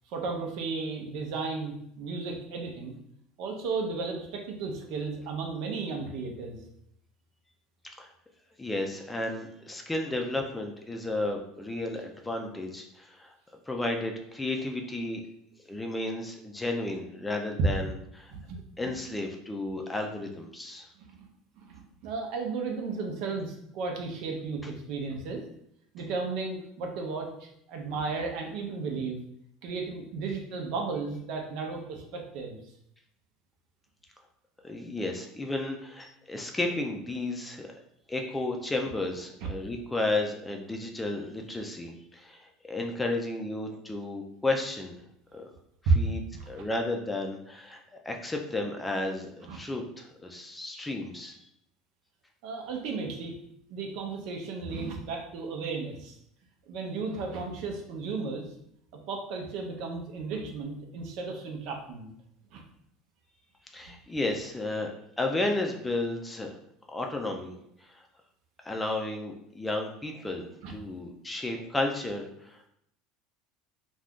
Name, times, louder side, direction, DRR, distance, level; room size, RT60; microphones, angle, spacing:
voice 1, 0.1-2.9 3.4-6.6 18.3-18.9 21.1-21.3 21.6-25.4 25.9-29.2 29.6-32.6 39.4-39.5 45.9-46.0 46.3-46.6 49.5-49.6 52.4-53.4 53.7-56.2 56.7-58.5 59.1-62.1 62.5-62.6 70.6-70.8, right 4 dB, 65° right, 2 dB, 0.6 m, -34 dB
voice 2, 8.6-13.3 13.7-15.2 15.7-18.3 18.8-20.9 34.6-37.7 38.1-45.0 45.3-45.4 46.0-46.2 46.5-47.8 48.1-51.3 63.7-64.9 65.2-66.5 66.9-67.5 67.9-68.0 68.6-72.6, left 2 dB, 10° left, 2 dB, 0.5 m, -33 dB
2.5 x 2.3 x 3.5 m, 0.73 s
supercardioid pair, 105°, 0 cm